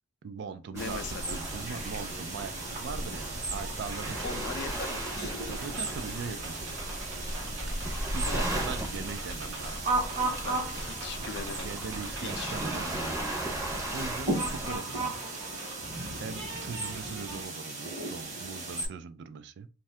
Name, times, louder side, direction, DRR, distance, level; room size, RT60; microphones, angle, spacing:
voice 1, 0.2-4.7 5.6-6.7 7.7-9.9 11.6-13.2 13.9-15.1 16.2-19.7, right 5 dB, 60° right, 0.3 m, -40 dB
voice 2, 0.7-1.4 4.2-5.3 8.3-8.4 10.4-11.7 12.2-12.6, left 5 dB, 60° left, 0.4 m, -40 dB
Waves surf, 0.7-14.8, right 1 dB, 15° right, 0.7 m, -36 dB
sound 1, 0.8-18.9, right 2 dB, 40° right, 1.1 m, -36 dB
sound 2, 3.4-17.4, right 2 dB, 85° right, 1.0 m, -45 dB
2.6 x 2.4 x 3.2 m
head